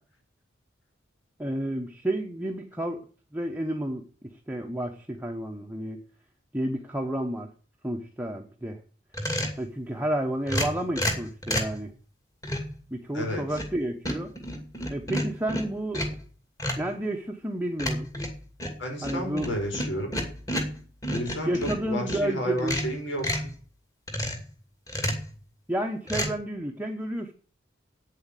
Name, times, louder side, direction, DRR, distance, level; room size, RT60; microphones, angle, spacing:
voice 1, 1.4-3.0 3.3-6.0 6.5-7.5 7.8-8.8 9.6-11.9 12.9-14.3 14.9-16.2 16.8-18.1 19.0-19.5 21.5-22.8 25.7-27.3, right 1 dB, 10° right, 2 dB, 0.9 m, -31 dB
sound 1, 9.1-9.6 10.5-11.8 12.4-12.8 13.3-13.8 14.0-16.2 16.6-16.9 17.8-22.2 22.6-23.5 24.1-24.5 24.9-25.3 26.1-26.3, equal, 15° left, 2.5 m, -30 dB
voice 2, 13.1-13.6 18.8-20.2 21.1-23.5, equal, 75° left, 1 dB, 5.8 m, -32 dB
9.1 x 7.9 x 9.0 m, 0.40 s
head